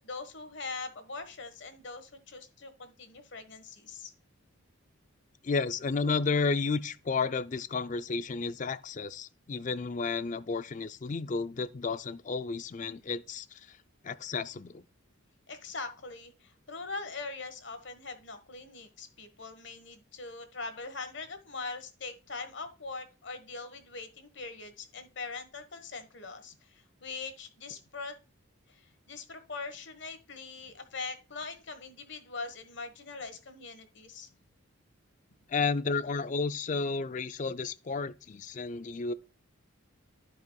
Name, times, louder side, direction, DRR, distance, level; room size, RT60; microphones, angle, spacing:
voice 1, 0.0-4.1 15.5-28.2 28.7-34.3, left 4 dB, 55° left, 1.3 m, -42 dB
voice 2, 5.4-13.8 14.0-14.8 35.5-39.1, left 4 dB, 35° left, 0.4 m, -32 dB
14.0 x 4.8 x 2.3 m
head